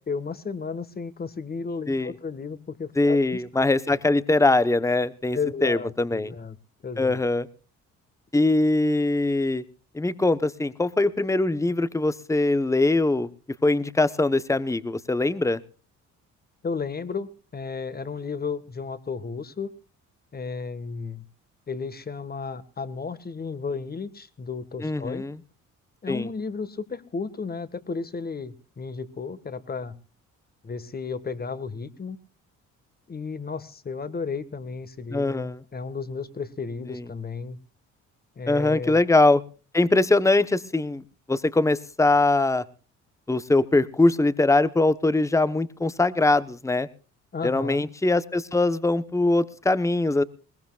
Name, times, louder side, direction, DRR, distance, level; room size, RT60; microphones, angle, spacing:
voice 1, 0.1-3.6 5.3-6.6 6.8-7.2 16.6-19.7 20.3-21.2 21.7-25.3 26.0-30.0 30.6-32.2 33.1-37.6 38.3-39.0 47.3-47.9, left 5 dB, 30° left, 15 dB, 1.7 m, -33 dB
voice 2, 3.0-6.3 7.0-7.5 8.3-9.6 9.9-13.3 13.6-15.6 24.8-25.4 26.1-26.3 35.1-35.6 36.9-37.0 38.5-39.4 39.7-41.0 41.3-42.6 43.3-46.9 47.4-50.2, left 2 dB, 10° left, 14 dB, 1.0 m, -22 dB
21.5 x 19.5 x 2.4 m, 0.36 s
cardioid pair, 90°, 30 cm